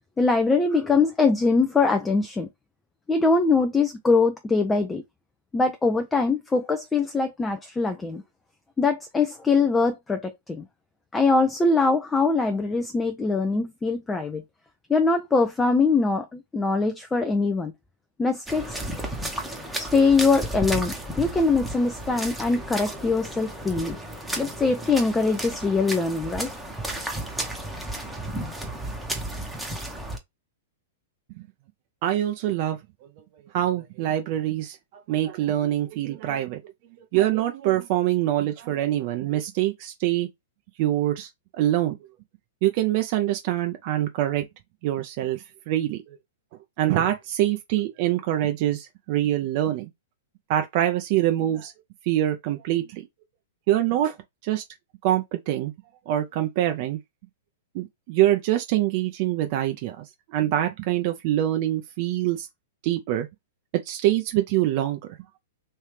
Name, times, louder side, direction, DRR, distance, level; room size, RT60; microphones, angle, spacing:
voice 1, 0.2-2.5 3.1-5.0 5.5-8.2 8.8-10.7 11.1-14.4 14.9-17.7 18.2-18.8 19.8-24.0 24.4-26.5, left 4 dB, 15° left, 0.5 m, -22 dB
sound 1, 18.5-30.2, right 1 dB, ahead, 0.9 m, -33 dB
voice 2, 32.0-32.8 33.5-36.6 37.1-40.3 40.8-42.0 42.6-44.5 44.8-46.2 46.8-49.9 50.5-51.7 52.0-53.1 53.7-54.2 54.4-54.6 55.0-55.7 56.1-57.0 57.7-62.5 62.8-63.3 63.8-65.0, right 13 dB, 50° right, 0.5 m, -24 dB
3.2 x 2.7 x 3.3 m
hypercardioid pair, 110°, 0 cm